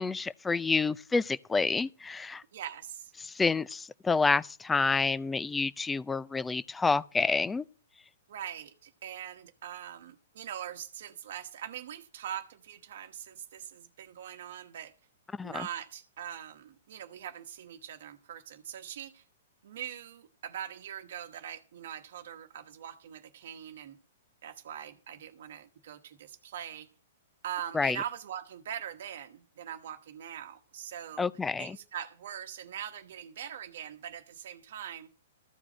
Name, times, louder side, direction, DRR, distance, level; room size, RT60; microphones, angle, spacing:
voice 1, 0.0-2.4 3.2-7.6 15.4-15.7 27.7-28.0 31.2-31.8, left 4 dB, 10° left, 0.4 m, -28 dB
voice 2, 2.5-3.1 8.3-14.9 15.4-19.2 19.6-24.0 24.4-26.9 27.4-31.3 31.6-35.1, right 10 dB, 65° right, 1.1 m, -42 dB
14.0 x 4.9 x 7.7 m
hypercardioid pair, 120°, 0 cm